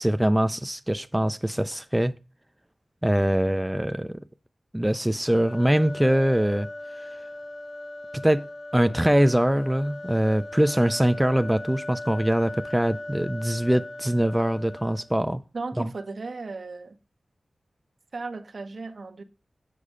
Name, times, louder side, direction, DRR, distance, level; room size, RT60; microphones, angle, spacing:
voice 1, 0.0-2.1 3.0-4.2 4.7-6.7 8.1-8.5 8.7-15.4 15.8-15.9, right 1 dB, 10° right, 0.4 m, -23 dB
sound 1, 5.3-15.2, left 1 dB, 60° left, 2.0 m, -39 dB
voice 2, 15.5-17.0 18.1-19.2, right 3 dB, 70° right, 0.9 m, -35 dB
6.7 x 5.4 x 4.9 m
cardioid pair, 55°, 0 cm